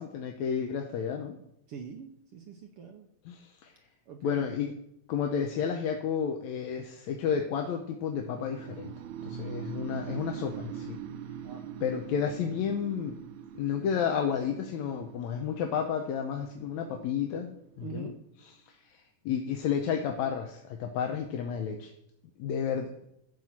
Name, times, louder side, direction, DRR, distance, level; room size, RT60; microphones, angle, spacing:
voice 1, 0.0-1.4 3.3-3.7 4.2-4.7 5.1-8.9 9.2-11.0 11.8-13.2 13.6-18.1 19.3-21.9 22.4-22.9, left 7 dB, 75° left, 4 dB, 2.1 m, -31 dB
voice 2, 1.7-3.1 4.1-4.5 11.4-11.6 17.8-18.2, right 5 dB, 65° right, 4 dB, 1.4 m, -43 dB
sound 1, 8.2-18.1, right 8 dB, 85° right, 2.1 m, -43 dB
14.0 x 5.4 x 7.3 m, 0.78 s
omnidirectional pair, 3.4 m